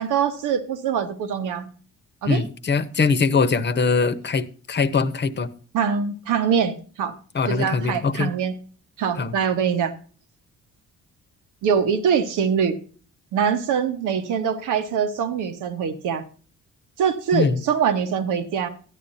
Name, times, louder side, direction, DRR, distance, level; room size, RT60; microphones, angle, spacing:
voice 1, 0.0-1.7 2.2-2.4 5.7-7.1 7.5-8.5 9.0-9.9 11.6-12.8 13.3-16.2 17.0-18.7, right 7 dB, 90° right, 7 dB, 1.4 m, -23 dB
voice 2, 2.2-5.5 7.3-8.3 9.2-9.3 17.3-17.6, left 5 dB, 35° left, 11 dB, 1.0 m, -22 dB
13.0 x 10.0 x 2.8 m, 0.40 s
cardioid pair, 90°, 30 cm